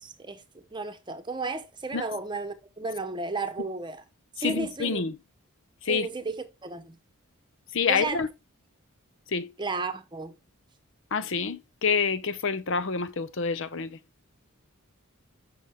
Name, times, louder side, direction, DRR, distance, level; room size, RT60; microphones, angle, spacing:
voice 1, 0.0-4.0 4.4-5.0 5.9-7.0 7.9-8.2 9.6-10.4, right 3 dB, 20° right, 0.9 m, -33 dB
voice 2, 4.4-5.2 5.8-6.1 7.7-8.3 9.3-9.5 11.1-14.0, left 5 dB, 60° left, 0.7 m, -27 dB
7.1 x 6.3 x 3.4 m
head